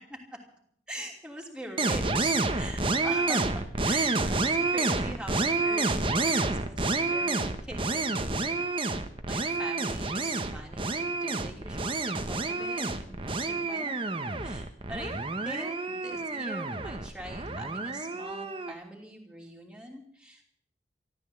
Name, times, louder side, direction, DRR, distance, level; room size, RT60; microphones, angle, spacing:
voice 1, 0.1-0.4 0.9-7.4 7.6-8.6 9.3-14.0 14.4-15.1 15.4-20.4, right 1 dB, 5° right, 0 dB, 2.9 m, -43 dB
sound 1, 1.8-18.7, right 3 dB, 30° right, 1.1 m, -29 dB
13.5 x 13.5 x 7.9 m, 0.63 s
head